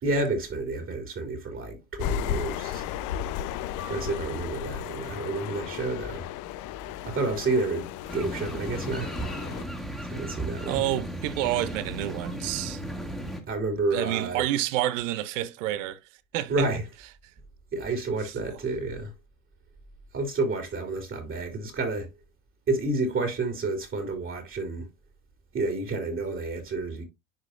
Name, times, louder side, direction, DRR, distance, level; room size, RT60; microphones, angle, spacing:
voice 1, 0.0-2.9 3.8-6.3 7.0-9.1 10.1-10.8 13.5-14.4 16.5-16.8 17.7-19.1 20.1-22.1 22.7-24.9 25.5-27.1, right 3 dB, 30° right, 2.6 m, -30 dB
sound 1, 2.0-9.6, left 10 dB, 50° left, 0.7 m, -34 dB
sound 2, 3.8-5.1, left 7 dB, 85° left, 3.3 m, -47 dB
sound 3, 8.1-13.4, right 1 dB, ahead, 1.8 m, -35 dB
voice 2, 10.7-12.8 13.9-16.0 16.3-16.8 18.5-18.6, right 14 dB, 70° right, 0.9 m, -29 dB
10.5 x 4.8 x 2.5 m
hypercardioid pair, 85°, 40 cm